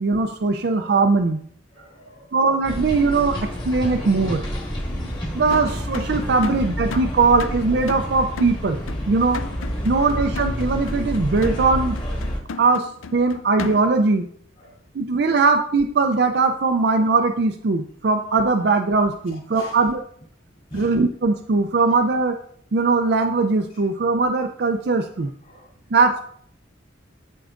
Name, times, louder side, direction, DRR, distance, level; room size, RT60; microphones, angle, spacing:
voice 1, 0.0-1.4 2.3-3.3 3.7-4.4 5.4-9.4 9.8-12.0 12.6-14.3 14.9-20.0 20.7-22.4 22.7-25.3 25.9-26.2, right 3 dB, 55° right, 5 dB, 0.4 m, -20 dB
voice 2, 1.7-2.3 6.4-6.7 9.9-10.0 11.4-11.6 12.4-12.6 13.2-13.3 14.6-14.8 19.3-19.9 20.5-21.0 23.7-23.8 25.2-25.9, left 1 dB, 40° left, -2 dB, 3.3 m, -46 dB
sound 1, 2.6-12.4, equal, 25° left, 1.6 m, -29 dB
sound 2, 5.5-14.1, left 5 dB, 80° left, 0.5 m, -36 dB
13.0 x 4.6 x 2.5 m, 0.62 s
head